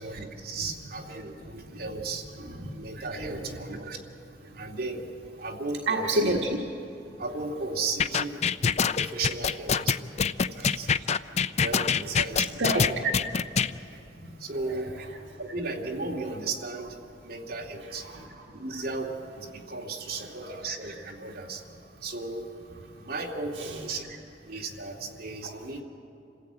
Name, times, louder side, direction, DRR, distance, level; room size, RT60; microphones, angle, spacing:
voice 1, 0.0-2.3 2.6-4.0 4.5-5.1 5.4-6.2 7.2-8.4 8.9-11.1 11.6-13.1 14.4-18.1 18.5-21.6 22.0-22.5 23.0-25.8, right 3 dB, 60° right, -1 dB, 2.5 m, -35 dB
voice 2, 0.6-0.9 1.4-3.6 4.4-4.6 5.9-6.9 8.9-9.0 10.5-10.8 11.3-11.6 12.3-13.0 13.6-14.9 18.0-18.4 20.2-20.6 21.3-21.4 22.9-23.1 23.6-23.8 25.4-25.5, right 1 dB, 80° right, -1 dB, 1.6 m, -33 dB
sound 1, 8.0-13.7, left 6 dB, 40° left, 0.4 m, -24 dB
27.5 x 16.0 x 8.7 m, 2.7 s
head